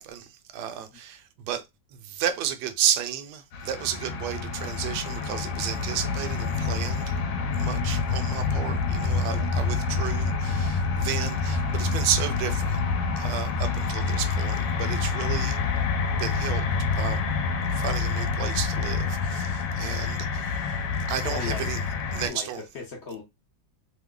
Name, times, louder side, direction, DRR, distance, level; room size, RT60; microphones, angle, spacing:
voice 1, 0.0-1.6 1.9-7.2 7.6-12.8 13.2-15.6 16.1-16.6 16.9-17.2 17.7-21.8 22.1-22.6, right 10 dB, 70° right, 1.1 m, -32 dB
sound 1, 3.5-22.3, left 4 dB, 75° left, 1.3 m, -27 dB
voice 2, 21.2-21.7 22.3-23.2, left 4 dB, 60° left, 0.7 m, -37 dB
3.1 x 2.1 x 3.6 m
omnidirectional pair, 2.0 m